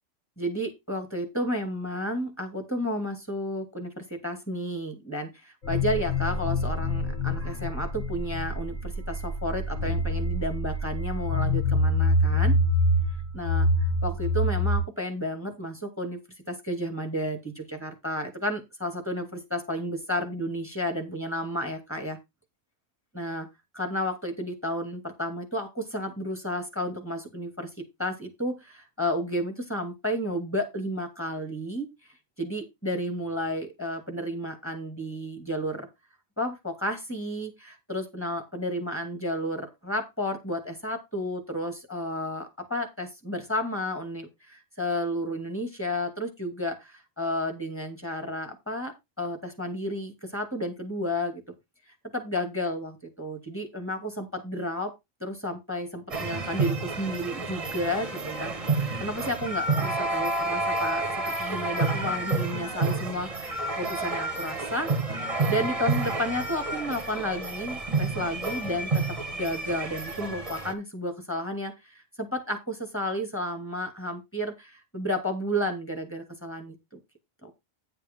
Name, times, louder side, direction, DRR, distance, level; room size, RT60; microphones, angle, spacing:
voice 1, 0.4-12.6 13.3-13.7 14.0-16.2 16.5-22.2 23.1-23.5 23.7-31.9 32.4-35.9 36.4-51.4 52.1-54.9 55.2-61.1 61.4-63.3 63.8-64.9 65.2-69.0 69.3-77.0 77.4-77.5, equal, 10° left, 5 dB, 2.4 m, -32 dB
sound 1, 5.6-14.8, left 1 dB, 90° left, 7.8 m, -26 dB
sound 2, 56.1-70.7, right 3 dB, 30° right, 1.2 m, -29 dB
9.8 x 6.8 x 3.7 m, 0.21 s
omnidirectional pair, 1.3 m